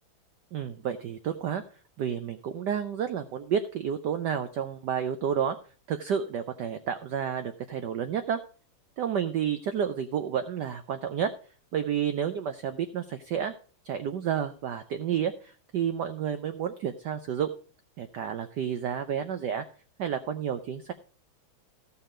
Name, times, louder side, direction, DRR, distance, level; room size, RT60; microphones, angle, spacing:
voice 1, 0.5-1.6 2.0-5.6 5.9-8.4 9.0-11.3 11.7-13.5 13.8-17.5 18.0-19.6 20.0-20.9, right 8 dB, 70° right, 10 dB, 1.1 m, -30 dB
15.0 x 5.6 x 5.0 m, 0.41 s
omnidirectional pair, 2.4 m